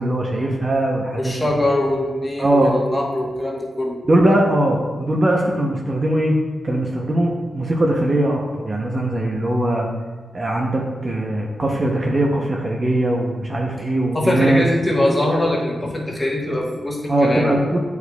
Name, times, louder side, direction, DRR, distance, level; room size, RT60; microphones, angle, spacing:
voice 1, 0.0-1.4 2.4-2.8 4.1-6.4 6.6-9.9 10.3-14.7 17.1-17.8, right 1 dB, 30° right, -1 dB, 0.6 m, -20 dB
voice 2, 1.2-4.0 14.1-17.5, left 1 dB, 15° left, -2 dB, 1.1 m, -22 dB
9.9 x 4.7 x 2.3 m, 1.4 s
wide cardioid pair, 150°, 0 cm